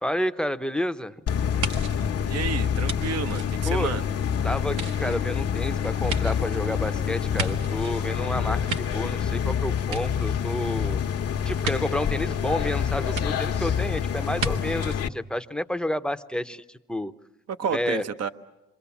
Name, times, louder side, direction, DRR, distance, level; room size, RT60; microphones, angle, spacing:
voice 1, 0.0-1.1 3.7-3.9 4.4-11.0 11.4-17.1 17.7-18.0, left 1 dB, 5° left, 9 dB, 0.8 m, -30 dB
sound 1, 1.3-15.1, left 8 dB, 55° left, 1.1 m, -27 dB
sound 2, 1.6-4.2 4.7-8.0 8.4-9.5 9.8-10.7 11.6-11.8 13.1-13.2 14.4-14.5 14.8-15.0, right 5 dB, 80° right, 1.6 m, -34 dB
voice 2, 2.3-4.1 17.5-18.3, right 7 dB, 55° right, 10 dB, 1.1 m, -30 dB
27.0 x 24.5 x 7.1 m, 0.95 s
cardioid pair, 90°, 30 cm